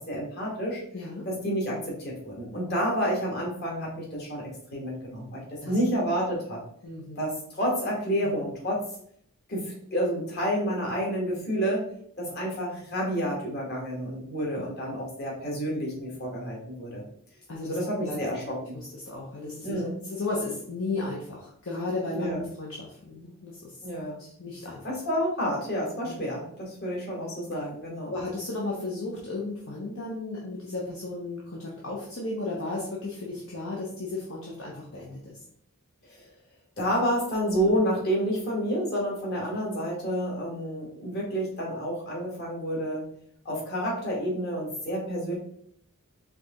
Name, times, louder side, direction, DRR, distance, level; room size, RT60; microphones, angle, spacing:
voice 1, 0.0-0.8 1.3-6.6 7.2-8.9 9.5-11.9 12.2-17.0 17.6-18.7 19.6-20.0 22.1-22.4 23.8-24.2 24.8-28.2 36.1-36.3 36.8-43.1 43.5-45.4, equal, 45° left, -3 dB, 1.7 m, -29 dB
voice 2, 0.9-1.3 5.6-5.8 6.8-7.2 8.2-8.3 17.5-18.2 18.7-19.8 20.1-23.8 24.2-24.8 26.0-26.2 28.1-35.4, left 2 dB, 60° left, -3 dB, 0.9 m, -34 dB
4.7 x 2.9 x 3.7 m, 0.65 s
head